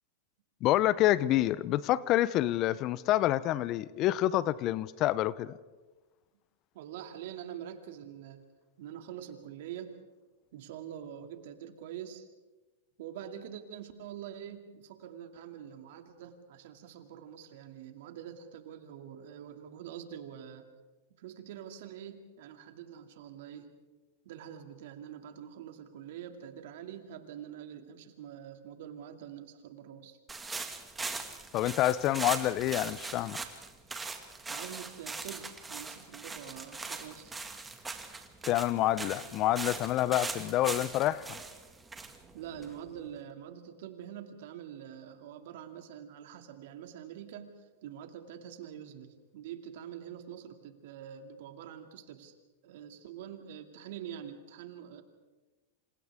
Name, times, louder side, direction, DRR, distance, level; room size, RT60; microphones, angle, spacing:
voice 1, 0.6-5.6 31.5-33.4 38.4-41.4, left 14 dB, 40° left, 0.7 m, -27 dB
voice 2, 6.7-8.4 8.8-10.0 10.5-12.3 13.0-20.7 21.2-23.7 24.2-30.2 34.5-37.3 42.3-52.3 52.6-55.0, right 9 dB, 65° right, 2.5 m, -45 dB
sound 1, 30.3-43.1, right 3 dB, 15° right, 2.1 m, -41 dB
27.5 x 27.5 x 3.7 m
hypercardioid pair, 115°, 0 cm